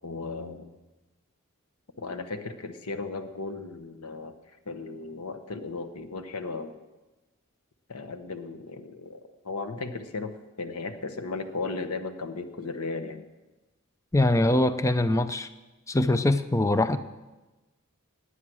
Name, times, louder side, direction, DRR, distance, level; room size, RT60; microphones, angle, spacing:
voice 1, 0.0-0.7 2.0-4.3 4.7-6.8 7.9-13.2, left 3 dB, 90° left, 9 dB, 1.2 m, -36 dB
voice 2, 14.1-15.5 15.9-17.0, left 1 dB, 15° left, 11 dB, 0.5 m, -23 dB
18.0 x 9.9 x 6.2 m, 1.1 s
head